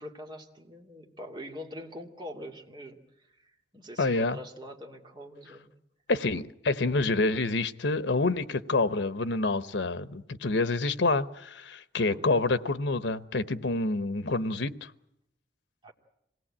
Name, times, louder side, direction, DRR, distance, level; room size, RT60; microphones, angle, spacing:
voice 1, 0.0-5.7 12.1-12.3 15.8-15.9, equal, 25° right, 2.7 m, -44 dB
voice 2, 4.0-4.4 6.1-14.9, left 3 dB, 90° left, 0.9 m, -27 dB
26.5 x 18.5 x 8.7 m
head